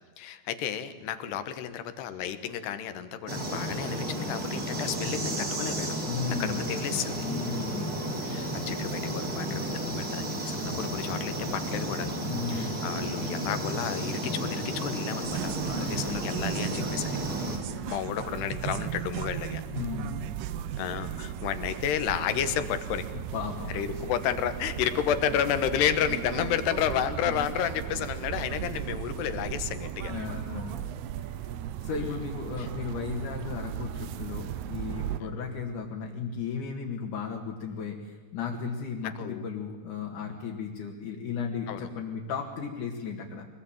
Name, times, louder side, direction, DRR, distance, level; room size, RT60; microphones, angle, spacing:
voice 1, 0.2-6.0 6.3-7.3 8.2-12.2 12.5-17.2 17.9-19.6 20.8-23.1 23.7-30.1 32.6-32.7 39.2-39.5 41.7-41.9, left 9 dB, 80° left, 11 dB, 3.4 m, -31 dB
sound 1, 3.3-17.6, right 1 dB, 20° right, 4.0 m, -32 dB
voice 2, 6.0-6.7 7.2-8.0 12.2-12.9 15.7-16.2 17.3-17.9 19.7-20.3 23.1-23.7 30.1-30.9 31.2-31.4 31.8-43.5, left 5 dB, 55° left, -1 dB, 3.2 m, -35 dB
sound 2, 15.2-35.2, right 11 dB, 75° right, 2.8 m, -36 dB
24.0 x 20.0 x 9.0 m, 1.4 s
omnidirectional pair, 4.8 m